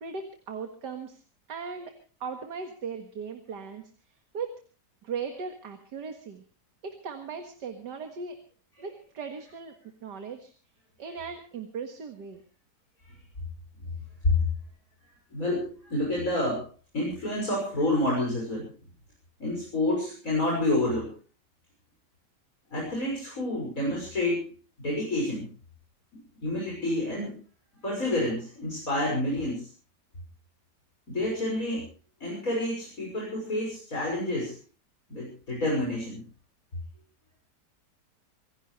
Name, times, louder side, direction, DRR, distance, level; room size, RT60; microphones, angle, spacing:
voice 1, 0.0-1.2 1.5-2.0 2.2-3.9 4.3-4.6 5.0-6.4 6.8-8.4 8.8-9.7 10.0-10.5 11.0-12.4, right 5 dB, 75° right, 6 dB, 2.3 m, -38 dB
voice 2, 15.3-16.7 16.9-18.7 19.4-21.1 22.7-24.5 24.8-25.5 26.1-27.4 27.8-29.7 31.1-31.9 32.2-34.6 35.1-36.2, left 1 dB, 50° left, -3 dB, 6.8 m, -28 dB
26.0 x 16.5 x 3.2 m, 0.38 s
omnidirectional pair, 1.8 m